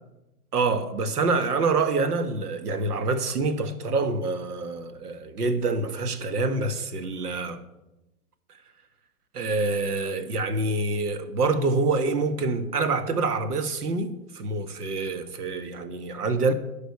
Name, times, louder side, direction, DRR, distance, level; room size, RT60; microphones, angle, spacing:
voice 1, 0.5-7.6 9.3-16.5, right 3 dB, 80° right, 1.5 m, -26 dB
11.5 x 5.3 x 8.3 m
hypercardioid pair, 125°, 45 cm